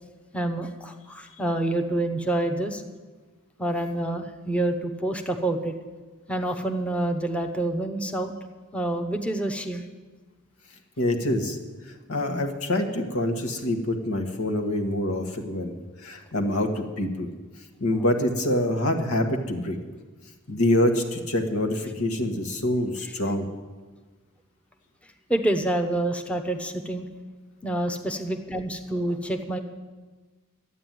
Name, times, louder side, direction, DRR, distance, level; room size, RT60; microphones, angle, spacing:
voice 1, 0.3-2.8 3.6-5.7 6.3-8.3 8.7-9.8 17.9-18.0 25.3-27.1 27.6-29.6, right 1 dB, 5° left, 4 dB, 0.9 m, -27 dB
voice 2, 11.0-11.6 12.1-17.3 17.8-19.8 20.5-23.5, left 1 dB, 80° left, 4 dB, 1.7 m, -26 dB
13.0 x 9.0 x 9.3 m, 1.3 s
head